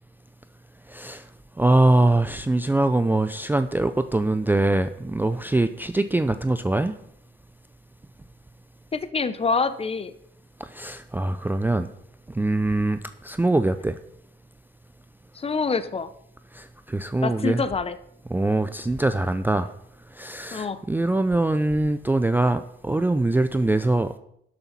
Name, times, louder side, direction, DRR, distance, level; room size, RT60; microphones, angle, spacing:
voice 1, 0.9-1.2 1.6-6.9 10.6-11.9 12.3-14.0 16.5-17.6 18.3-19.7 20.2-24.1, right 2 dB, 10° right, 10 dB, 0.4 m, -23 dB
voice 2, 8.9-10.1 15.3-16.1 17.2-18.0 20.5-20.8, left 4 dB, 30° left, 12 dB, 0.8 m, -26 dB
12.0 x 6.9 x 4.3 m, 0.73 s
cardioid pair, 90°, 20 cm